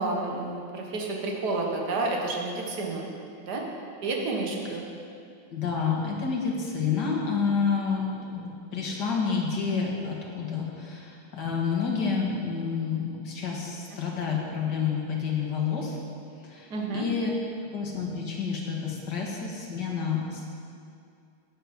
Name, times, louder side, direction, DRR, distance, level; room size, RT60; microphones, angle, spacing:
voice 1, 0.0-3.1 3.4-3.6 4.0-4.8 16.7-17.1, right 3 dB, 50° right, 0 dB, 1.8 m, -30 dB
voice 2, 5.5-16.0 16.4-17.3 17.7-20.5, left 5 dB, 55° left, -2 dB, 2.2 m, -29 dB
11.5 x 9.5 x 5.3 m, 2.4 s
omnidirectional pair, 2.3 m